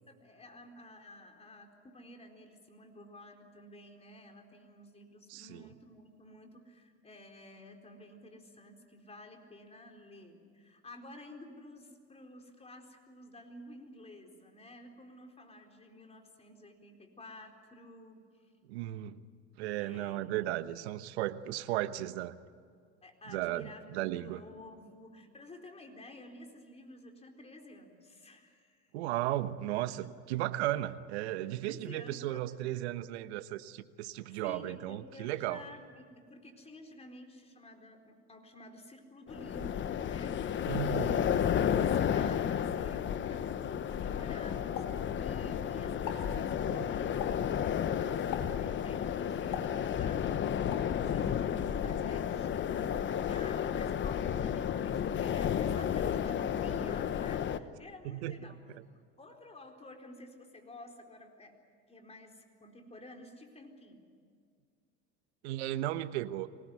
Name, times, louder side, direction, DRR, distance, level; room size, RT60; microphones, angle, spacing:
voice 1, 0.1-18.5 19.8-20.3 23.0-28.9 29.8-29.9 31.6-32.5 34.2-58.6 58.9-61.5 61.9-64.1, left 1 dB, 20° left, 3 dB, 4.2 m, -52 dB
voice 2, 5.3-5.7 18.7-19.2 19.6-22.4 23.3-24.4 28.9-35.6 40.7-41.2 46.7-46.9 58.0-58.4 58.7-58.8 65.4-66.5, right 14 dB, 75° right, 12 dB, 1.2 m, -35 dB
sound 1, 39.3-57.6, left 9 dB, 35° left, 1.1 m, -32 dB
Explosion, 44.8-45.6 45.9-46.4 47.2-47.6 48.3-48.7 49.5-50.2 50.7-51.0, left 8 dB, 60° left, 3.1 m, -42 dB
24.5 x 19.0 x 9.5 m, 2.1 s
hypercardioid pair, 95°, 33 cm